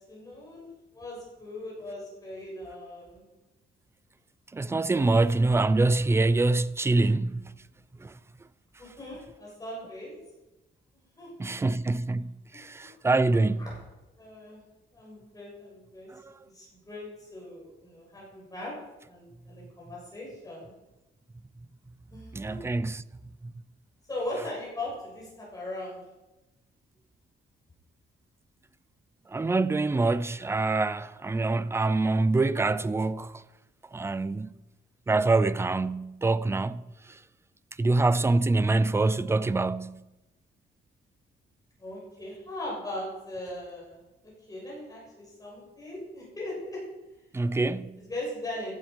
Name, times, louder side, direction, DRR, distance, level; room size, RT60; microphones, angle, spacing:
voice 1, 0.1-0.7 0.9-3.2 8.8-10.1 11.2-11.6 12.5-12.9 13.6-13.8 14.1-14.6 14.9-16.1 16.4-18.7 19.1-20.7 22.1-22.5 24.1-26.0 41.8-46.8 47.3-47.6 48.0-48.8, left 1 dB, 15° left, 6.7 m, -39 dB
voice 2, 4.5-7.4 8.0-8.1 11.4-13.7 22.3-23.0 24.4-24.5 29.3-33.3 33.9-34.5 35.1-36.8 37.8-40.0 47.3-48.0, right 3 dB, 10° right, 0.4 m, -25 dB
15.5 x 12.0 x 5.3 m
wide cardioid pair, 160°, 21 cm